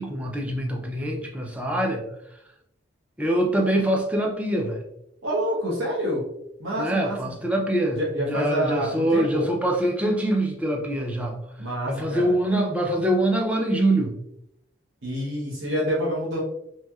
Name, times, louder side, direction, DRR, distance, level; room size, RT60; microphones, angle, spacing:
voice 1, 0.0-2.0 2.3-2.4 3.2-4.8 6.8-11.4 11.9-14.2, right 1 dB, 5° right, 1 dB, 0.4 m, -24 dB
voice 2, 5.2-6.2 6.6-7.2 7.9-9.5 11.6-12.3 15.0-16.4, equal, 80° right, -6 dB, 0.9 m, -27 dB
3.0 x 2.7 x 2.3 m, 0.80 s
head